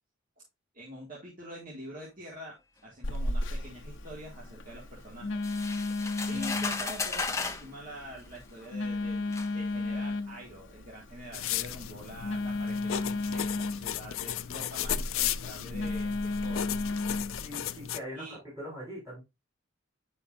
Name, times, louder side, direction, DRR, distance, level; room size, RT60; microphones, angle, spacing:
voice 1, 0.7-2.6 2.8-5.4 6.3-16.7 18.1-18.4, equal, 40° right, -4 dB, 1.9 m, -45 dB
Telephone, 3.0-17.4, left 2 dB, 65° left, 0.9 m, -34 dB
sound 1, 5.4-7.7 8.6-8.7 9.3-9.5, left 4 dB, 15° left, 0.6 m, -34 dB
voice 2, 6.3-6.6 17.4-19.2, equal, 15° right, -7 dB, 4.4 m, -42 dB
sound 2, 11.3-18.0, left 11 dB, 85° left, 0.4 m, -35 dB
9.5 x 5.6 x 2.5 m, 0.22 s
head